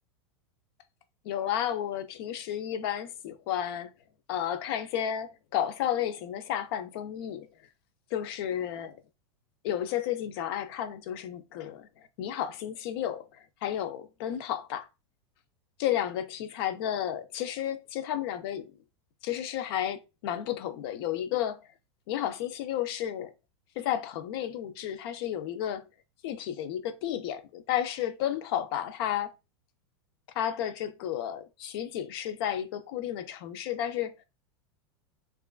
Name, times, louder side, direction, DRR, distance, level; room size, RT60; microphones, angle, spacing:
voice 1, 1.2-3.9 4.3-7.5 8.1-9.0 9.6-11.9 12.2-13.2 13.6-14.9 15.8-18.6 19.2-21.6 22.1-23.3 23.8-25.8 26.2-29.3 30.4-34.1, left 10 dB, 60° left, 0.5 m, -32 dB
2.9 x 2.4 x 2.3 m
supercardioid pair, 125°, 14 cm